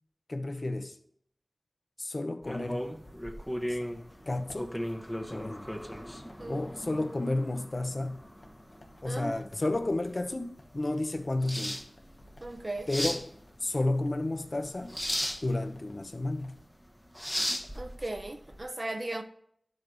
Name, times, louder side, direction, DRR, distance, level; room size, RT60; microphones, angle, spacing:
voice 1, 0.3-1.0 2.0-2.9 3.7-3.8 4.3-4.7 5.3-5.7 6.5-8.2 9.0-11.8 12.9-13.2 13.6-15.0 15.4-16.6, left 2 dB, 55° left, 0.7 m, -32 dB
sound 1, 2.4-18.6, equal, 5° left, 0.8 m, -37 dB
sound 2, 2.7-16.7, left 1 dB, 85° left, 1.2 m, -57 dB
voice 2, 9.1-9.4 12.4-12.9 17.7-19.2, right 2 dB, 45° right, 0.6 m, -37 dB
11.0 x 7.8 x 2.7 m
wide cardioid pair, 50°, 0 cm